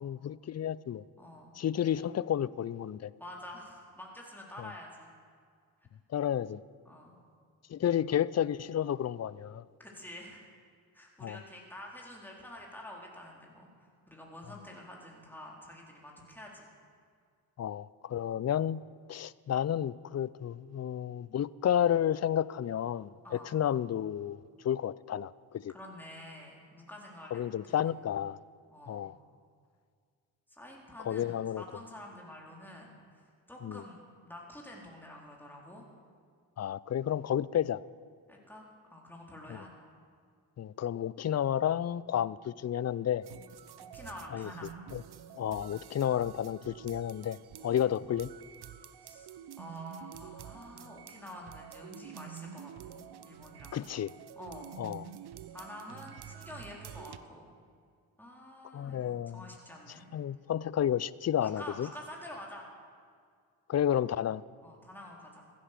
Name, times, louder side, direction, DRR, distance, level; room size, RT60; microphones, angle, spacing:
voice 1, 0.0-1.0 1.6-3.1 4.6-4.7 6.1-6.6 7.7-9.6 11.2-11.4 17.6-18.8 19.1-25.7 27.3-28.4 28.9-29.1 31.0-31.6 33.6-33.8 36.6-37.8 39.5-39.6 40.6-43.2 44.3-44.5 44.9-45.0 45.3-47.4 47.6-48.3 53.7-54.1 54.8-55.1 58.7-59.4 60.1-61.9 63.7-64.4, left 10 dB, 35° left, 20 dB, 0.5 m, -31 dB
voice 2, 1.2-1.6 1.9-2.1 3.2-5.1 6.8-7.2 7.9-8.0 9.8-10.4 10.9-16.7 18.1-18.3 23.2-23.5 25.7-27.9 28.7-29.1 30.5-34.0 34.2-35.8 38.3-38.6 38.9-39.7 43.8-44.8 49.0-49.3 49.6-53.8 54.4-54.7 55.5-57.4 58.2-60.1 61.4-62.7 64.6-65.6, left 1 dB, 5° left, -2 dB, 4.1 m, -48 dB
sound 1, 43.2-57.2, right 9 dB, 60° right, 0.9 m, -48 dB
15.5 x 11.0 x 6.8 m, 2.1 s
supercardioid pair, 50°, 45 cm